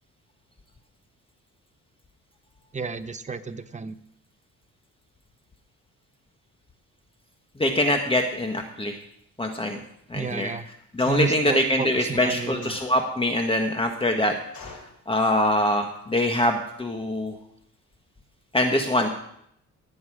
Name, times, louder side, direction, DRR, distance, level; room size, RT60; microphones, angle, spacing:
voice 1, 2.7-4.0 10.1-10.7 11.1-12.7, right 4 dB, 25° right, 9 dB, 1.0 m, -31 dB
voice 2, 7.6-9.0 9.4-9.8 10.1-10.5 10.9-14.4 14.6-14.8 15.1-17.3 18.5-19.1, left 1 dB, 20° left, 4 dB, 1.6 m, -23 dB
sound 1, 11.0-11.5 12.6-13.3 14.5-14.9, left 4 dB, 80° left, 6.7 m, -43 dB
19.0 x 8.2 x 5.0 m, 0.72 s
cardioid pair, 90°, 30 cm